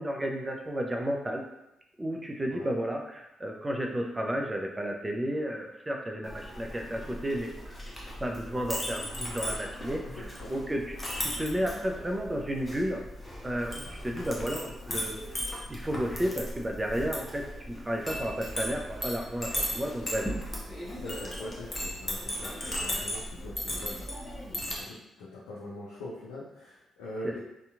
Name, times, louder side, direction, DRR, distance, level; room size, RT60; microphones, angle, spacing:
voice 1, 0.0-1.4 2.0-7.8 8.2-13.0 13.4-15.2 15.7-20.3 27.2-27.3, equal, 20° right, 1 dB, 0.5 m, -32 dB
Chink clink, 6.2-24.8, equal, 25° left, 0.8 m, -37 dB
voice 2, 10.0-10.5 21.0-27.4, left 1 dB, 85° left, -7 dB, 0.4 m, -43 dB
2.7 x 2.3 x 2.5 m, 0.88 s
hypercardioid pair, 45°, 0 cm